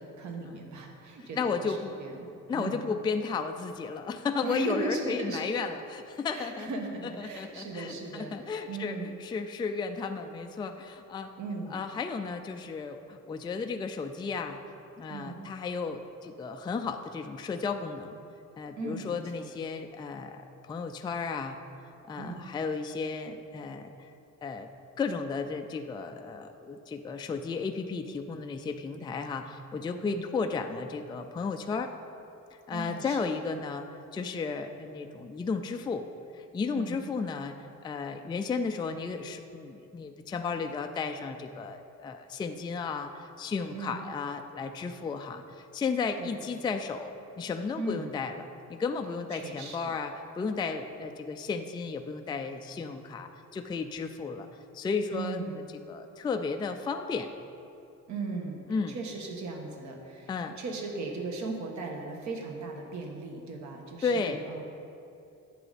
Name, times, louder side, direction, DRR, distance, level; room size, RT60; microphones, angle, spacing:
voice 1, 0.0-2.8 4.4-5.5 6.3-8.3 8.7-9.1 11.4-11.8 15.1-15.4 18.8-19.5 22.2-22.4 30.1-30.3 32.7-33.2 36.7-37.0 43.7-44.0 46.2-46.3 47.8-48.1 49.3-49.8 55.1-55.6 58.1-58.6 58.9-60.3 60.6-64.6, right 3 dB, 60° right, 1 dB, 1.4 m, -37 dB
voice 2, 1.4-1.9 2.5-6.7 7.2-11.3 11.7-14.6 15.0-18.1 18.6-21.6 22.1-24.1 24.4-24.7 25.0-31.9 32.7-33.9 34.1-36.0 36.3-37.5 37.8-54.5 54.7-55.4 55.9-57.3 58.7-59.0 60.3-60.6 64.0-64.4, left 5 dB, 15° left, 5 dB, 0.3 m, -34 dB
11.0 x 7.7 x 4.1 m, 2.7 s
cardioid pair, 145°, 32 cm